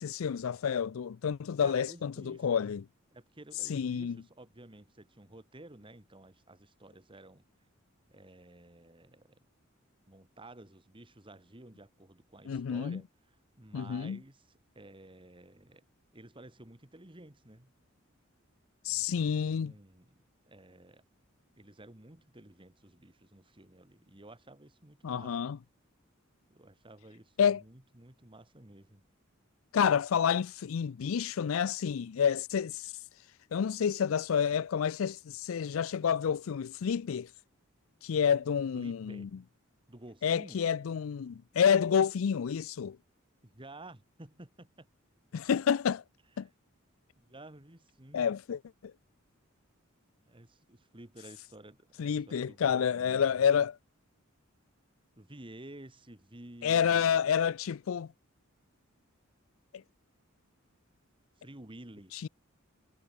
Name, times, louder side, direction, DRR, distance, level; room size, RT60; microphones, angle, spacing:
voice 1, 0.0-2.8 3.6-4.2 12.5-13.0 13.7-14.2 18.8-19.7 25.0-25.6 27.4-27.6 29.7-33.3 33.5-37.3 38.0-39.3 40.2-43.0 45.3-46.0 46.4-46.5 48.1-48.9 52.0-53.8 56.6-58.1 62.1-62.3, left 7 dB, 80° left, 0.4 m, -29 dB
voice 2, 1.6-2.6 3.1-7.5 8.1-9.4 10.1-15.8 16.1-17.7 18.9-20.2 20.4-21.0 21.6-25.4 26.5-29.0 38.7-39.3 39.9-40.6 43.4-44.9 46.4-46.5 47.2-48.3 50.2-53.3 55.2-57.2 61.4-62.1, right 1 dB, 25° right, 2.0 m, -52 dB
head